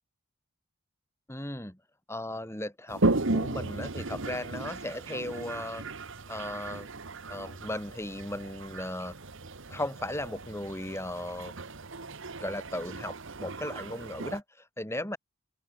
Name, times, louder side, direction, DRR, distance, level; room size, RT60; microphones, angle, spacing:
voice 1, 1.3-1.8 2.1-5.8 6.3-6.9 7.3-9.1 9.7-11.5 12.4-15.2, left 1 dB, 10° left, 3.7 m, -36 dB
Toilet flush, 2.9-14.4, right 2 dB, 55° right, 1.4 m, -35 dB
open air
head